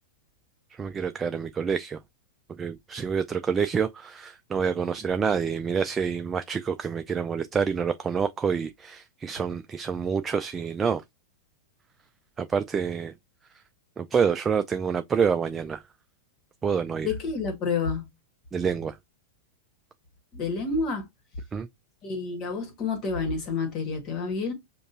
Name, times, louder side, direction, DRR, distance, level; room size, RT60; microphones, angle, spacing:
voice 1, 0.8-2.0 2.6-11.0 12.4-13.1 14.0-15.8 16.6-17.1 18.5-19.0 21.5-21.7, right 6 dB, 20° right, 0.3 m, -27 dB
voice 2, 17.0-18.1 20.3-21.1 22.0-24.5, left 4 dB, 40° left, 1.5 m, -29 dB
5.2 x 2.5 x 2.5 m
hypercardioid pair, 105°, 0 cm